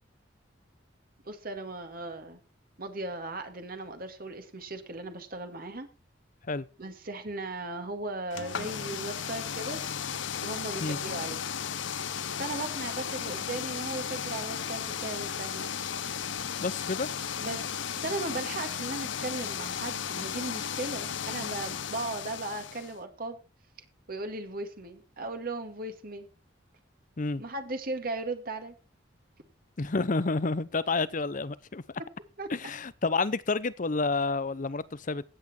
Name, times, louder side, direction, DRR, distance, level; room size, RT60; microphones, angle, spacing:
voice 1, 1.3-2.4 2.8-5.9 6.8-9.8 10.4-11.4 12.4-15.7 17.4-23.4 24.1-26.3 27.4-28.8 32.0-32.1 32.4-32.5, right 2 dB, 50° right, 2.1 m, -37 dB
sound 1, 8.3-23.0, left 8 dB, 75° left, 0.7 m, -35 dB
voice 2, 16.6-17.1 27.2-27.4 29.8-32.0 32.5-35.2, left 3 dB, 45° left, 0.7 m, -29 dB
15.5 x 8.7 x 4.4 m
head